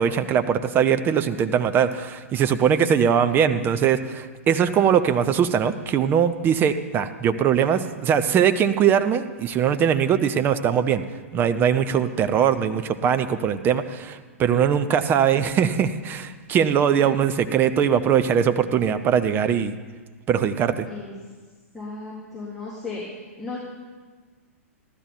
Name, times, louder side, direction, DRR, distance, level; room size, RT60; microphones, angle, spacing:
voice 1, 0.0-11.0 11.3-19.7 20.3-20.9, right 8 dB, 25° right, 10 dB, 0.7 m, -21 dB
voice 2, 21.7-23.0 23.4-23.6, left 4 dB, ahead, -9 dB, 3.9 m, -35 dB
15.0 x 12.0 x 4.5 m, 1.4 s
figure-of-eight pair, 100°, 8 cm